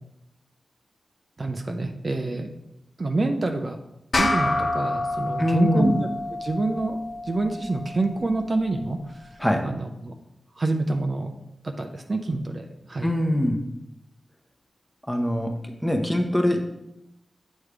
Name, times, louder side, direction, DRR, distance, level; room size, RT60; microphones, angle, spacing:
voice 1, 1.4-2.5 3.0-3.8 4.2-6.1 6.4-7.0 7.3-9.0 9.6-10.1 10.6-11.3 11.6-13.1, right 2 dB, 40° right, 4 dB, 0.5 m, -27 dB
sound 1, 4.1-8.9, left 2 dB, 50° left, 0.7 m, -28 dB
voice 2, 5.4-5.9 9.4-9.7 13.0-13.6 15.1-15.5 15.8-16.6, left 1 dB, 5° left, 3 dB, 0.8 m, -22 dB
8.1 x 3.1 x 4.9 m, 0.84 s
wide cardioid pair, 120°, 0 cm